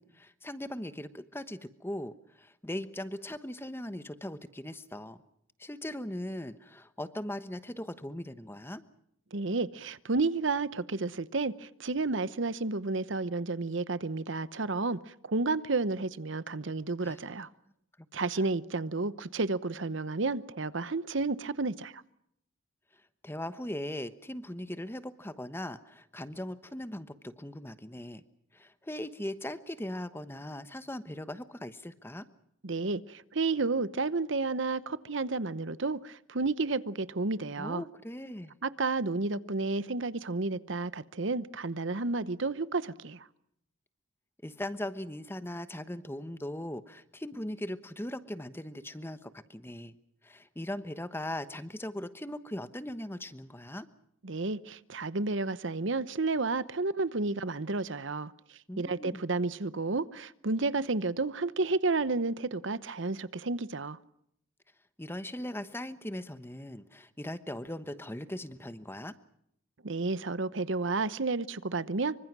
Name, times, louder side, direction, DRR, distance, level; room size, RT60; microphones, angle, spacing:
voice 1, 0.0-5.2 5.6-8.8 17.0-17.2 18.4-18.5 22.9-28.2 28.5-32.3 37.6-38.5 44.4-49.9 50.2-53.9 58.7-59.2 65.0-69.1, left 1 dB, 10° left, 1.1 m, -39 dB
voice 2, 9.3-17.5 18.1-22.0 32.6-37.8 38.6-43.3 54.2-64.0 69.8-72.2, right 3 dB, 65° right, 0.9 m, -31 dB
26.0 x 24.5 x 6.1 m
head